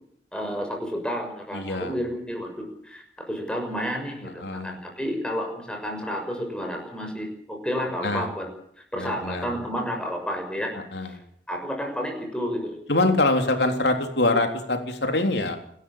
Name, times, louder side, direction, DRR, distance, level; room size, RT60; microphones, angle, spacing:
voice 1, 0.3-8.5 8.9-10.7 11.0-11.1 11.5-12.8, equal, 5° left, 3 dB, 6.5 m, -31 dB
voice 2, 1.5-1.9 4.2-4.7 8.0-8.3 8.9-9.5 10.7-11.2 12.9-15.6, left 2 dB, 70° left, 5 dB, 3.6 m, -24 dB
28.0 x 13.0 x 8.8 m, 0.68 s
head